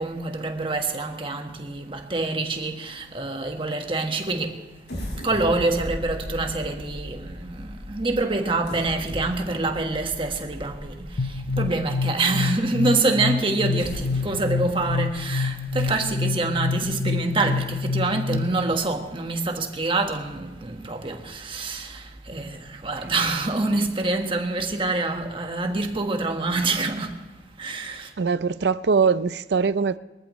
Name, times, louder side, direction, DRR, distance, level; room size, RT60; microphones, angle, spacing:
voice 1, 0.0-4.7 5.1-27.3 27.6-28.1, right 3 dB, 30° right, 1.4 m, -26 dB
sound 1, 4.8-12.0 12.6-12.7 13.6-17.1 17.6-17.7 18.1-18.3, equal, 70° left, 5.1 m, -38 dB
sound 2, 11.2-18.7, left 4 dB, 50° left, 0.6 m, -27 dB
voice 2, 28.2-30.0, right 5 dB, 70° right, 0.5 m, -22 dB
23.0 x 14.0 x 3.1 m
head